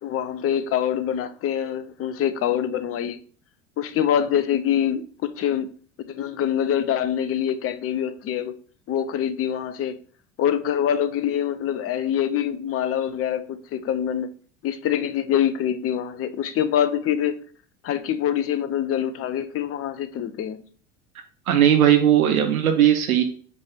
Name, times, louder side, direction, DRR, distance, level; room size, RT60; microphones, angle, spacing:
voice 1, 0.0-3.2 3.8-5.7 6.1-8.5 8.9-9.9 10.4-14.3 14.6-17.4 17.8-20.6, left 9 dB, 35° left, 0.7 m, -25 dB
voice 2, 21.5-23.2, right 10 dB, 75° right, 0.9 m, -17 dB
6.8 x 3.4 x 4.3 m
figure-of-eight pair, 65°, 43 cm